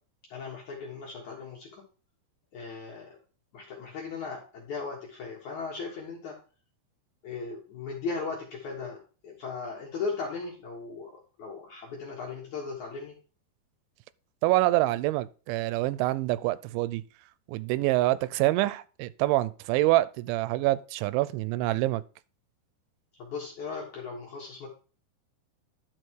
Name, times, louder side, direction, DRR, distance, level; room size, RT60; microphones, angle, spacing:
voice 1, 0.3-1.8 2.5-3.2 3.5-6.4 7.2-13.2 23.2-24.7, left 4 dB, 65° left, 2.0 m, -37 dB
voice 2, 14.4-17.0 17.5-22.0, right 17 dB, 85° right, 2.9 m, -26 dB
11.0 x 5.2 x 4.5 m
omnidirectional pair, 5.3 m